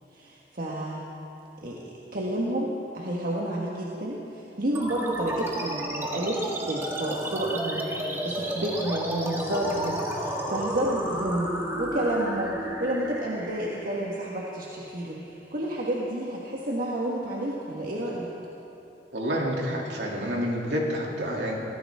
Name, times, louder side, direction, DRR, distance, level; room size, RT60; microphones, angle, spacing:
voice 1, 0.1-1.0 1.6-15.2 15.5-18.3, right 1 dB, 55° right, -4 dB, 1.5 m, -30 dB
sound 1, 4.7-15.7, right 1 dB, 15° right, 1.7 m, -33 dB
voice 2, 19.1-21.5, equal, 75° right, -2 dB, 2.8 m, -28 dB
23.0 x 16.5 x 3.6 m, 3.0 s
head